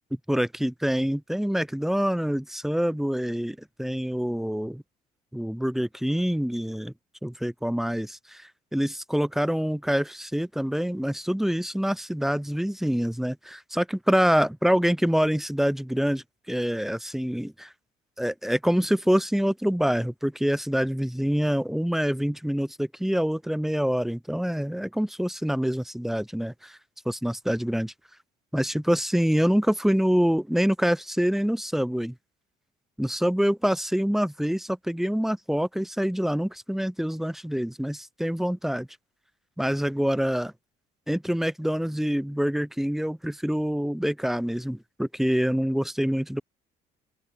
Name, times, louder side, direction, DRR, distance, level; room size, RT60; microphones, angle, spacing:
voice 1, 0.3-4.8 5.3-6.9 7.2-17.7 18.2-26.8 27.0-27.9 28.5-32.1 33.0-38.9 39.6-40.5 41.1-46.4, equal, ahead, 2.7 m, -26 dB
open air
cardioid pair, 110°, 17 cm